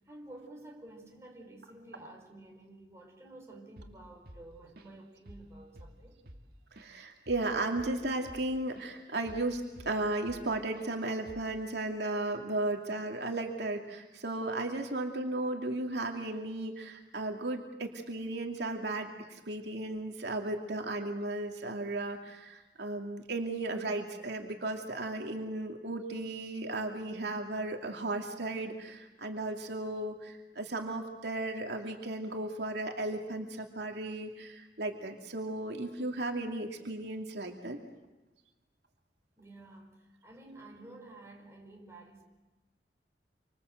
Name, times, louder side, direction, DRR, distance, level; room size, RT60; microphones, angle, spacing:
voice 1, 0.0-6.2 39.4-42.2, right 2 dB, 15° right, 0 dB, 4.8 m, -51 dB
Drum kit / Drum, 3.8-4.0 4.3-5.0 5.3-5.5 5.8-8.9 9.3-10.5 10.8-10.9 11.3-11.6, equal, 55° right, 2.0 m, -51 dB
voice 2, 6.7-37.8, right 2 dB, 75° right, 2 dB, 2.7 m, -35 dB
28.0 x 25.5 x 7.9 m, 1.1 s
head